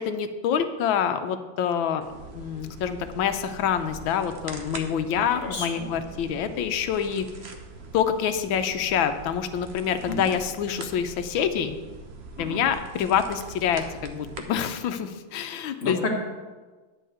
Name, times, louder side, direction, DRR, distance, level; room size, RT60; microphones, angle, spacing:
voice 1, 0.0-2.1 2.3-7.2 7.9-11.8 12.4-16.0, left 8 dB, 75° left, 9 dB, 1.5 m, -26 dB
sound 1, 2.0-14.5, right 3 dB, 45° right, 0.9 m, -43 dB
voice 2, 5.3-5.9 10.1-10.3 12.4-12.6 15.8-16.2, left 2 dB, 35° left, 0 dB, 1.7 m, -30 dB
10.5 x 4.6 x 7.8 m, 1.3 s
omnidirectional pair, 2.2 m